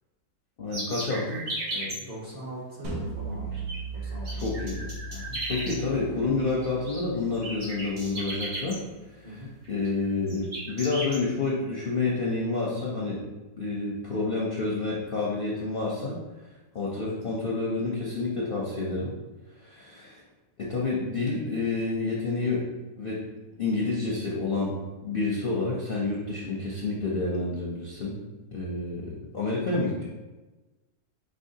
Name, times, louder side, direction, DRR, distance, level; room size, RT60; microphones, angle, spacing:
voice 1, 0.6-1.4 4.4-4.8 5.5-8.8 9.2-9.3 9.7-13.3 13.6-16.2 16.7-19.1 19.6-20.2 20.6-22.7 23.0-23.2 23.6-28.2 28.5-30.0, left 3 dB, 55° left, -4 dB, 0.6 m, -29 dB
sound 1, 0.7-2.0 3.5-3.8 4.0-5.8 6.6-7.0 7.3-8.8 9.6-9.9 10.3-11.2, right 1 dB, 65° right, 2.1 m, -35 dB
voice 2, 1.7-3.5 3.9-5.4 9.2-9.5, equal, 40° right, -4 dB, 1.1 m, -41 dB
sound 2, 2.8-7.9, right 3 dB, 85° right, 1.5 m, -37 dB
5.4 x 3.4 x 2.7 m, 1.2 s
omnidirectional pair, 1.7 m